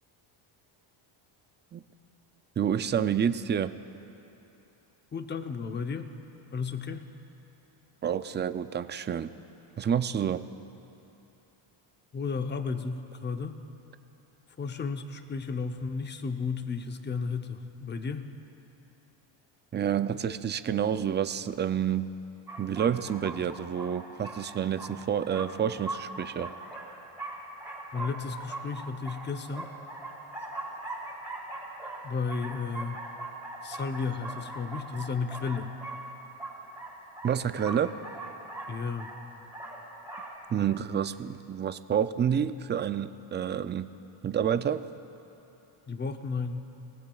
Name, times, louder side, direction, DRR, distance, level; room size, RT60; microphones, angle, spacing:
voice 1, 2.6-3.7 8.0-9.3 9.8-10.4 19.7-22.1 22.6-26.5 37.2-38.0 40.5-43.9 44.2-44.9, right 8 dB, 25° right, 12 dB, 0.3 m, -29 dB
voice 2, 5.1-6.1 6.5-7.0 12.1-13.6 14.6-18.3 27.9-29.7 32.0-33.0 33.6-35.7 38.7-39.1 45.9-46.7, left 5 dB, 20° left, 7 dB, 0.7 m, -33 dB
sound 1, 22.5-40.3, right 2 dB, 5° right, 4.2 m, -41 dB
29.0 x 18.0 x 2.3 m, 2.9 s
cardioid pair, 115°, 49 cm